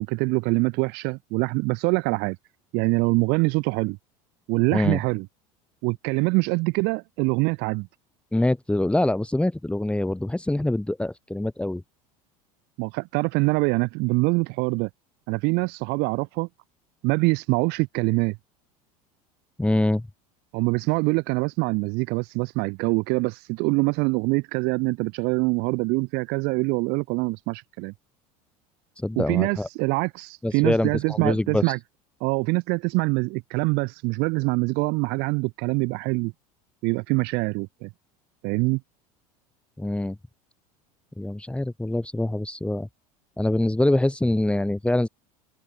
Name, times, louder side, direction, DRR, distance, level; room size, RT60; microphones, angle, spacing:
voice 1, 0.0-2.4 2.7-4.0 4.5-5.3 5.8-7.9 12.8-14.9 15.3-16.5 17.0-18.4 20.5-27.9 29.1-31.8 32.2-36.3 36.8-37.9 38.4-38.8, right 28 dB, 60° right, 1.7 m, -24 dB
voice 2, 8.3-11.8 19.6-20.1 29.0-29.7 30.4-31.7 39.8-40.2 41.2-42.9 43.4-45.1, left 1 dB, 5° left, 3.0 m, -24 dB
hypercardioid pair, 85°, 19 cm